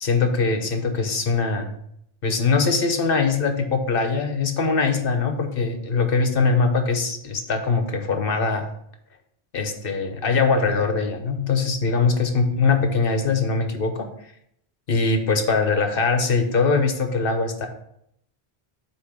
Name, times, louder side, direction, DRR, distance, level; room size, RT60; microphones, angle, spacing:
voice 1, 0.0-1.7 2.2-8.7 9.5-14.0 14.9-17.7, left 4 dB, 60° left, 5 dB, 1.1 m, -22 dB
8.3 x 3.1 x 6.0 m, 0.73 s
omnidirectional pair, 1.1 m